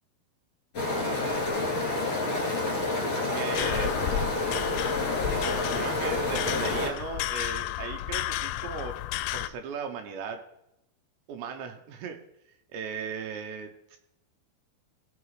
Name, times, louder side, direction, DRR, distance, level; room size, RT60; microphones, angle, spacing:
sound 1, 0.7-6.9, left 2 dB, 35° left, 2.7 m, -29 dB
voice 1, 0.9-1.6 3.2-4.1 5.8-9.0 9.3-10.4 11.3-12.2 12.7-14.0, right 5 dB, 75° right, 5 dB, 3.0 m, -37 dB
Nelsons-monument metal wire vibrating, 3.5-9.5, left 14 dB, 90° left, 3.0 m, -32 dB
18.0 x 6.1 x 4.8 m, 0.83 s
omnidirectional pair, 5.4 m